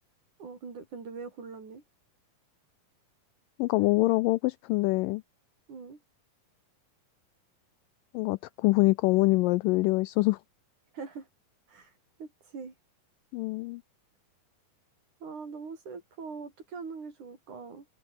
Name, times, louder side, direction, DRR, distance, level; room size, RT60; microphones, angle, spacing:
voice 1, 0.4-1.8 5.7-6.0 10.9-11.3 11.7-11.9 12.2-12.7 15.2-17.9, right 5 dB, 55° right, 5.9 m, -42 dB
voice 2, 3.6-5.2 8.1-10.4 13.3-13.8, left 22 dB, 80° left, 2.1 m, -25 dB
omnidirectional pair, 4.1 m